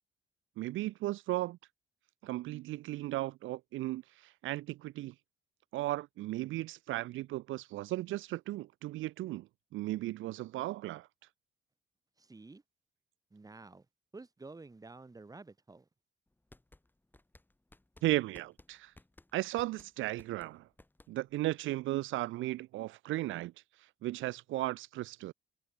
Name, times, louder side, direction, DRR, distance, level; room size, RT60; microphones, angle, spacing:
voice 1, 0.6-1.6 2.2-5.1 5.7-11.1 18.0-18.9 19.3-20.7 21.1-23.5 23.8-25.3, right 17 dB, 80° right, 0.5 m, -36 dB
voice 2, 12.2-12.6 13.3-13.9 14.1-15.9, right 3 dB, 20° right, 1.3 m, -51 dB
sound 1, 16.3-21.4, left 1 dB, 10° left, 1.5 m, -60 dB
cardioid pair, 90°, 20 cm